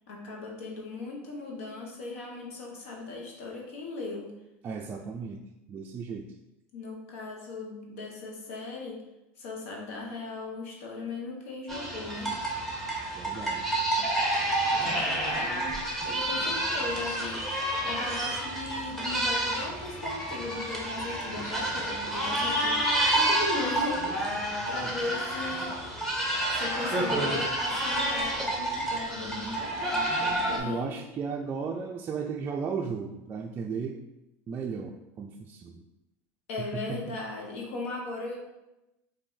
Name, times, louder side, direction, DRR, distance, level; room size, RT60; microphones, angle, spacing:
voice 1, 0.1-4.3 6.7-9.0 9.4-12.4 14.7-25.7 26.5-30.9 36.5-38.4, left 3 dB, 85° left, -1 dB, 1.1 m, -38 dB
voice 2, 4.6-5.4 5.7-6.3 13.2-13.6 24.8-24.9 30.6-34.0 34.5-35.8 36.6-37.0, right 6 dB, 30° right, 1 dB, 0.3 m, -35 dB
sound 1, 11.7-30.6, right 1 dB, 5° left, 1.0 m, -29 dB
4.3 x 2.7 x 4.0 m, 0.95 s
supercardioid pair, 125°, 7 cm